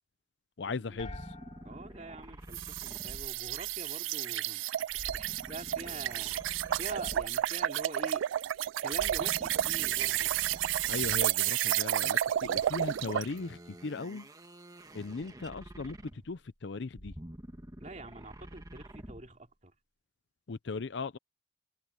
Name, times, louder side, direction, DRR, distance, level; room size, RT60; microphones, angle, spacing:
voice 1, 0.6-1.4 10.9-14.3 14.9-17.2 20.5-21.2, left 4 dB, 65° left, 0.6 m, -38 dB
sound 1, 1.0-3.2, left 5 dB, 35° left, 3.0 m, -52 dB
sound 2, 1.0-4.0 4.9-7.6 8.9-11.5 12.4-16.4 16.9-19.4, right 1 dB, 20° right, 1.4 m, -48 dB
voice 2, 1.6-4.7 5.1-6.3 6.8-8.3 8.8-10.3 17.8-19.7, right 2 dB, 40° right, 2.9 m, -45 dB
sound 3, 2.5-13.3, right 12 dB, 85° right, 0.3 m, -31 dB
head